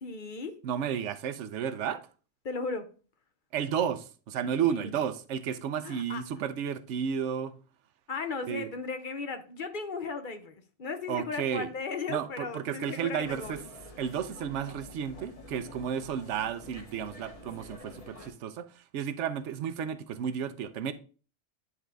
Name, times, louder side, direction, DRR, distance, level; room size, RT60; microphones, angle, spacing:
voice 1, 0.0-0.6 2.4-2.9 4.6-4.9 5.8-6.2 8.1-13.6, left 4 dB, 50° left, 0.8 m, -36 dB
voice 2, 0.6-2.1 3.5-7.5 8.5-8.7 11.1-11.7 12.1-13.6 14.0-20.9, right 8 dB, 85° right, 0.9 m, -32 dB
sound 1, 13.2-18.3, left 2 dB, 30° left, 1.1 m, -48 dB
9.7 x 3.8 x 3.4 m
omnidirectional pair, 1.2 m